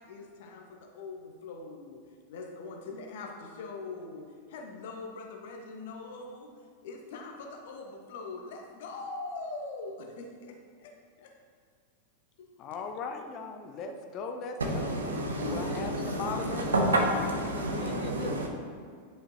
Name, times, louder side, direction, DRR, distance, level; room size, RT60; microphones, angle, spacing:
voice 1, 0.0-2.0 2.3-6.5 6.8-10.9 11.2-11.3, left 3 dB, 55° left, 2 dB, 1.1 m, -42 dB
voice 2, 12.6-16.7 16.9-17.0 17.6-18.3, left 5 dB, 35° left, 4 dB, 0.7 m, -39 dB
voice 3, 14.6-18.5, right 1 dB, 70° right, 1 dB, 1.2 m, -29 dB
10.5 x 5.0 x 3.0 m, 2.1 s
figure-of-eight pair, 90°, 0 cm